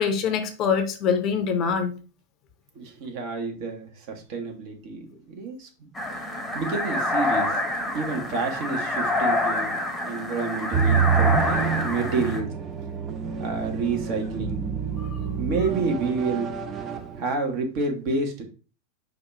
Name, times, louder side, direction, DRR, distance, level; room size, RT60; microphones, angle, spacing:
voice 1, 0.0-1.9 15.0-15.1, left 6 dB, 35° left, 7 dB, 0.7 m, -24 dB
voice 2, 2.7-5.9 6.5-7.6 7.9-9.8 10.0-12.5 13.4-14.6 15.4-16.5 17.2-18.4, right 4 dB, 45° right, 2 dB, 1.2 m, -29 dB
sound 1, 5.9-12.4, left 2 dB, 5° left, 1.0 m, -27 dB
sound 2, 10.7-17.2, right 7 dB, 30° right, 0.6 m, -27 dB
5.0 x 2.5 x 4.3 m, 0.36 s
figure-of-eight pair, 90°, 0 cm